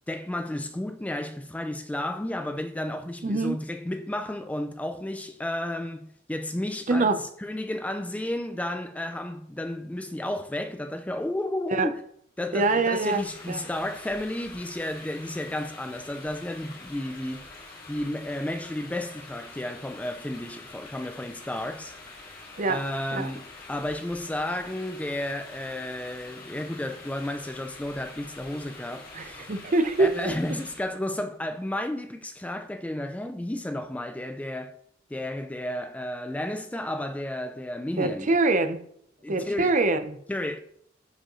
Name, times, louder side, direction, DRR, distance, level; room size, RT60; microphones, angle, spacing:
voice 1, 0.1-7.1 7.4-12.0 12.4-17.5 17.9-21.9 22.7-29.5 30.0-34.7 35.1-38.3 39.2-39.7 40.3-40.6, left 1 dB, 10° left, 0.3 m, -32 dB
voice 2, 3.2-3.6 6.9-7.2 11.7-11.9 12.5-13.6 22.6-22.8 23.1-23.3 29.1-30.1 38.0-38.8 39.3-40.2, right 3 dB, 40° right, 0.7 m, -24 dB
sound 1, 12.9-31.0, left 3 dB, 50° left, 2.0 m, -46 dB
11.0 x 5.1 x 3.0 m
head